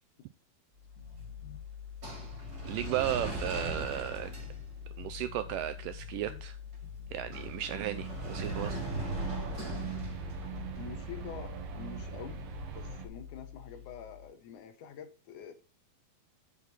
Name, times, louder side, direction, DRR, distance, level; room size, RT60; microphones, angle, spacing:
sound 1, 0.9-14.0, left 1 dB, 25° right, 3.0 m, -40 dB
sound 2, 1.0-1.6 2.1-2.9 3.7-4.7 5.0-6.5 6.8-7.8 8.5-10.6, left 2 dB, 45° left, 2.7 m, -54 dB
voice 1, 2.7-4.3 5.0-6.6 7.1-8.8, right 12 dB, 85° right, 1.9 m, -35 dB
sound 3, 7.4-13.1, right 8 dB, 70° right, 1.5 m, -42 dB
voice 2, 10.8-12.4 12.7-15.5, left 7 dB, 75° left, 2.0 m, -46 dB
8.2 x 5.9 x 4.0 m
omnidirectional pair, 4.3 m